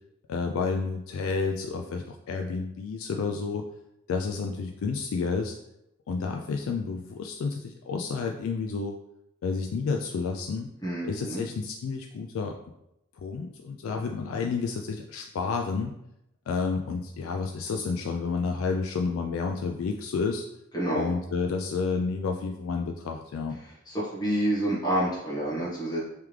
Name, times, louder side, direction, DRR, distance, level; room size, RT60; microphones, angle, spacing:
voice 1, 0.3-3.6 4.1-5.5 6.1-8.9 9.4-10.7 11.0-12.6 13.2-15.9 16.5-20.4 20.9-23.6, left 4 dB, 80° left, 3 dB, 0.3 m, -30 dB
voice 2, 10.8-11.4 20.7-21.1 23.9-26.0, right 1 dB, 20° left, -8 dB, 1.3 m, -28 dB
3.5 x 3.3 x 3.1 m, 0.83 s
head